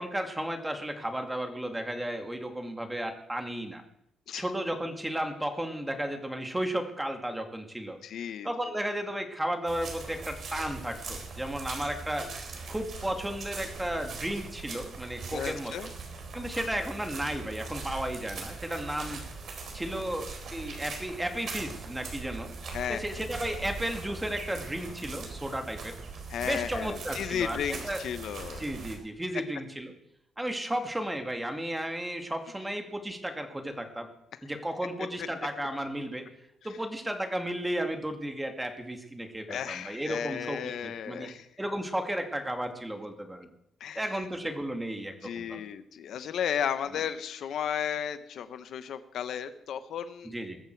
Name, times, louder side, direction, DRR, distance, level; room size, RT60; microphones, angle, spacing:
voice 1, 0.0-3.8 4.4-8.0 8.4-12.3 12.7-15.7 16.3-19.2 19.7-22.5 22.9-25.9 26.4-28.1 28.6-29.9 30.4-34.1 34.4-36.3 36.6-41.3 41.6-43.5 44.0-45.6 50.2-50.6, right 1 dB, 10° right, 5 dB, 2.1 m, -34 dB
voice 2, 8.0-8.5 15.3-15.9 22.7-23.2 26.3-28.6 39.5-41.5 43.8-44.1 45.2-50.3, left 9 dB, 65° left, 11 dB, 1.0 m, -34 dB
sound 1, 9.7-29.0, right 4 dB, 50° right, 4.1 m, -41 dB
20.5 x 14.0 x 4.7 m, 0.78 s
cardioid pair, 140°, 0 cm